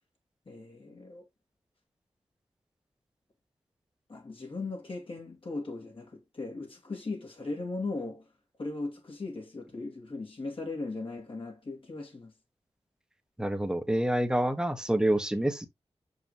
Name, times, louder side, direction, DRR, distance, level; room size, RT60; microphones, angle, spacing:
voice 1, 0.5-1.3 4.1-8.3 8.6-12.3, left 3 dB, 55° left, 2.5 m, -38 dB
voice 2, 13.4-15.7, right 1 dB, 5° right, 1.2 m, -27 dB
6.2 x 5.3 x 3.0 m
wide cardioid pair, 100°, 11 cm